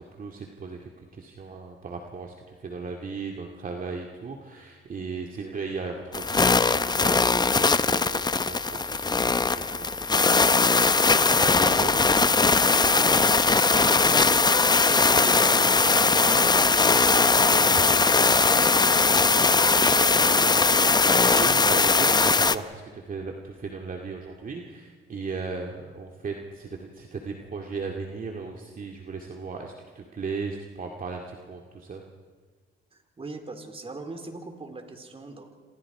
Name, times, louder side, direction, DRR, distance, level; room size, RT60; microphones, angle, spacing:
voice 1, 0.2-10.4 11.0-11.9 21.3-32.0, right 4 dB, 45° right, 1 dB, 2.3 m, -37 dB
sound 1, 6.1-22.6, left 4 dB, 20° left, 0.8 m, -20 dB
voice 2, 12.8-19.9 20.3-21.0 32.9-35.6, right 3 dB, 30° right, 5 dB, 3.7 m, -40 dB
28.5 x 26.5 x 4.9 m, 1.5 s
cardioid pair, 90°, 20 cm